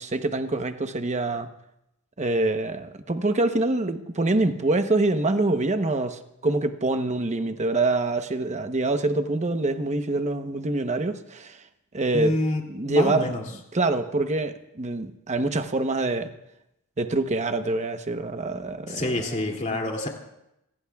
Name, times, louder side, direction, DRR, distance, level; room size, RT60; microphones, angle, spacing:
voice 1, 0.0-1.5 2.2-11.6 11.9-12.3 12.7-13.3 13.7-16.3 17.0-19.5, right 2 dB, 35° right, 0.9 m, -25 dB
voice 2, 12.1-12.6 12.9-13.4 18.9-20.1, left 1 dB, 35° left, 2.6 m, -27 dB
27.0 x 20.0 x 2.4 m
head